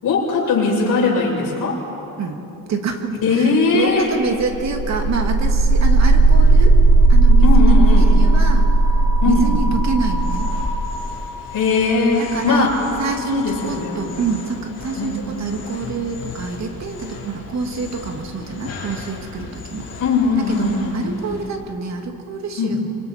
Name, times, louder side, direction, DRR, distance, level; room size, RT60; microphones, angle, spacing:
voice 1, 0.0-1.8 3.2-4.1 7.4-8.1 9.2-9.5 11.5-12.8 13.3-14.2 15.0-15.2 20.0-21.0 22.6-22.8, left 4 dB, 65° left, -4 dB, 7.1 m, -19 dB
voice 2, 2.7-6.8 7.1-8.7 9.3-10.5 12.2-12.7 13.0-19.9 20.5-20.7 20.9-22.8, right 4 dB, 50° right, 4 dB, 2.2 m, -27 dB
sound 1, 4.1-14.1, right 2 dB, 15° left, 3.6 m, -16 dB
sound 2, 10.0-21.5, left 4 dB, 45° left, 4.4 m, -37 dB
28.0 x 24.0 x 4.4 m, 2.9 s
cardioid pair, 135°, 35 cm